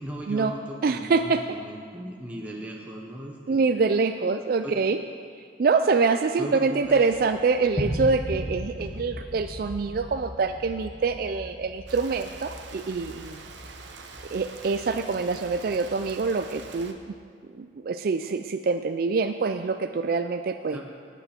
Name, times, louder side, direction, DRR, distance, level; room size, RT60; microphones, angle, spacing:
voice 1, 0.0-3.7 4.6-4.8 6.4-7.0 20.7-20.8, right 1 dB, 10° right, -2 dB, 0.8 m, -37 dB
voice 2, 0.8-1.4 3.5-5.0 5.4-13.4 14.3-17.1 17.5-20.8, right 4 dB, 50° right, 7 dB, 0.3 m, -25 dB
sound 1, 6.8-17.0, equal, 25° left, 1.7 m, -38 dB
Rain, 11.9-16.9, right 4 dB, 80° right, 1.0 m, -45 dB
15.5 x 9.2 x 4.4 m, 2.2 s
head